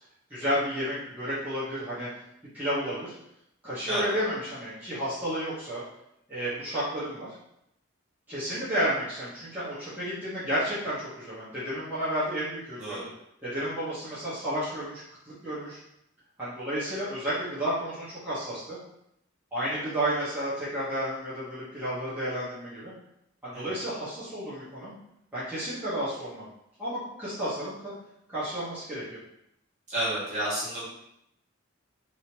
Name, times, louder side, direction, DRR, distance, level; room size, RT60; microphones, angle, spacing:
voice 1, 0.3-2.1 2.5-3.1 3.6-5.8 6.3-7.3 8.3-13.1 13.4-15.0 15.4-15.8 16.4-18.8 19.5-22.9 23.4-24.9 25.3-26.5 26.8-27.9 28.3-29.2, equal, 10° right, -13 dB, 1.0 m, -31 dB
voice 2, 3.9-4.2 12.8-13.1 23.5-23.8 29.9-30.8, right 1 dB, 35° right, -9 dB, 1.5 m, -31 dB
3.1 x 2.8 x 2.9 m, 0.79 s
head